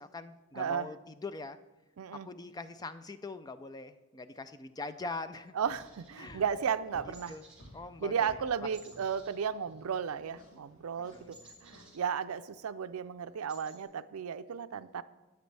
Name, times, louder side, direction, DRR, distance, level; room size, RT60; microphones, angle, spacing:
voice 1, 0.0-1.6 2.1-5.5 6.2-6.4 7.3-7.4 7.7-8.3 11.1-11.3, left 3 dB, 20° left, 11 dB, 0.3 m, -42 dB
voice 2, 0.5-0.9 2.0-2.3 5.5-7.4 8.0-11.4 11.6-15.0, right 7 dB, 85° right, 13 dB, 0.4 m, -34 dB
sound 1, 5.7-12.0, equal, 70° left, 1.7 m, -57 dB
sound 2, 5.7-6.8 7.1-7.7 8.0-8.2 8.7-10.2 10.5-12.6 13.0-13.1 13.3-13.8, right 2 dB, 5° right, 3.8 m, -57 dB
13.0 x 9.3 x 3.3 m, 1.1 s
head